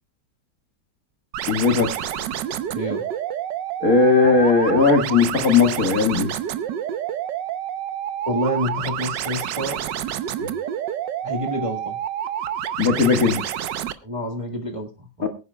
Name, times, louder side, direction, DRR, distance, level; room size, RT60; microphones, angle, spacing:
sound 1, 1.3-13.9, right 10 dB, 70° right, 1.4 m, -29 dB
voice 1, 1.5-1.9 3.8-6.3 10.4-10.5 12.8-13.4 15.2-15.3, left 4 dB, 50° left, 4 dB, 2.2 m, -18 dB
voice 2, 8.3-9.8 11.2-12.0 14.0-15.3, equal, 20° right, 1 dB, 1.3 m, -28 dB
23.0 x 9.8 x 2.2 m, 0.30 s
omnidirectional pair, 2.1 m